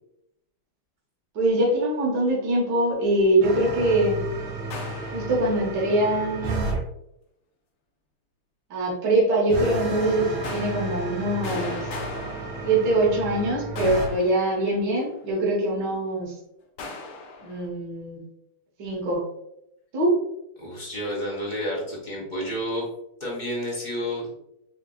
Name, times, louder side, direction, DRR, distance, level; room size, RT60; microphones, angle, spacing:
voice 1, 1.3-4.2 5.1-6.7 8.7-11.9 12.6-16.3 17.4-18.2 18.8-19.3 19.9-20.1, right 1 dB, 55° right, -4 dB, 1.6 m, -23 dB
sound 1, 3.4-6.8 9.5-14.1, right 2 dB, 80° right, 2.2 m, -32 dB
sound 2, 4.7-5.8 10.4-13.3 13.8-15.1 16.8-17.7, left 3 dB, 70° left, 1.3 m, -38 dB
voice 2, 20.6-22.8 23.2-24.3, equal, 35° left, -4 dB, 0.7 m, -30 dB
6.6 x 2.8 x 2.3 m, 0.82 s
omnidirectional pair, 2.4 m